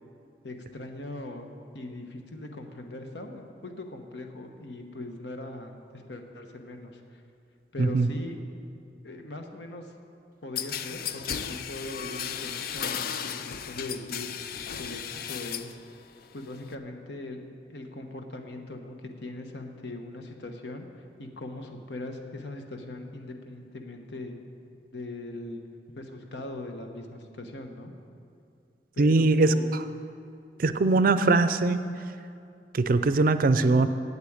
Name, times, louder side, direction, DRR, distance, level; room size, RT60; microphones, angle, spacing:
voice 1, 0.4-1.5 1.7-7.2 7.7-8.4 9.0-9.9 10.4-14.3 14.7-15.7 16.3-20.9 21.2-24.4 24.9-25.6 26.0-27.9 28.9-29.7, left 2 dB, 80° left, 4 dB, 1.1 m, -40 dB
sound 1, 10.6-15.8 16.1-16.7, left 8 dB, 55° left, 0.4 m, -35 dB
voice 2, 29.0-29.8 30.6-31.8 32.7-33.9, right 3 dB, 55° right, 12 dB, 0.5 m, -21 dB
8.5 x 8.3 x 8.6 m, 2.4 s
head